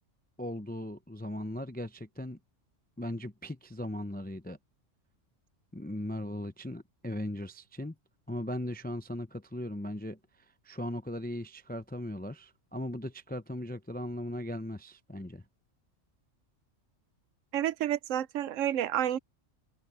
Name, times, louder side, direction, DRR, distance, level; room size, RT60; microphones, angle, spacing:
voice 1, 0.4-2.4 3.0-4.6 5.7-7.9 8.3-10.2 10.6-15.4, left 1 dB, 15° left, 0.3 m, -38 dB
voice 2, 17.5-19.2, right 11 dB, 80° right, 1.0 m, -30 dB
omnidirectional pair, 1.3 m